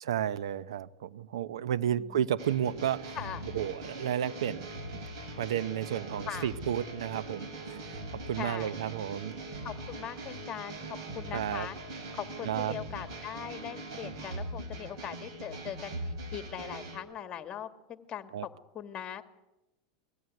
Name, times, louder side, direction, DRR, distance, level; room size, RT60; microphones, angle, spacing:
voice 1, 0.0-3.2 3.5-5.0 5.4-8.0 8.3-9.3 11.3-11.7 12.5-12.7 18.3-18.5, right 10 dB, 85° right, 0.8 m, -32 dB
sound 1, 2.4-17.0, right 2 dB, 65° right, 5.7 m, -41 dB
voice 2, 8.4-8.7 9.6-11.8 12.1-19.2, left 10 dB, 30° left, 1.9 m, -41 dB
22.0 x 16.0 x 9.3 m
supercardioid pair, 125°, 3 cm